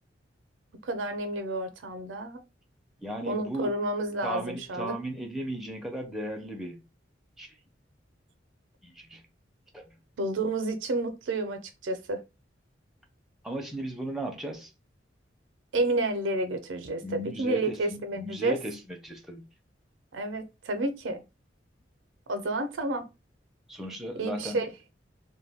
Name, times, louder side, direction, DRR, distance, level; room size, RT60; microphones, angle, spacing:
voice 1, 0.8-2.4 3.3-4.9 10.2-12.2 15.7-18.6 20.1-21.2 22.3-23.1 24.2-24.7, right 2 dB, 85° right, 0.5 m, -30 dB
voice 2, 3.0-3.7 4.2-6.8 7.4-7.6 8.8-9.2 9.7-9.9 13.4-14.7 17.0-19.5 23.7-24.6, right 1 dB, ahead, 0.4 m, -36 dB
2.2 x 2.2 x 3.3 m
head